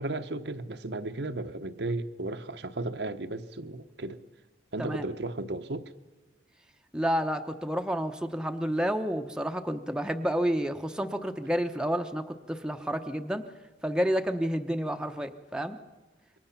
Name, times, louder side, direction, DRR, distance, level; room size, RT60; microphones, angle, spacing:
voice 1, 0.0-4.2 4.7-5.9, right 2 dB, 75° right, 1.0 m, -34 dB
voice 2, 6.9-13.4 13.8-15.8, equal, 5° right, 0.9 m, -30 dB
27.0 x 23.0 x 5.8 m
head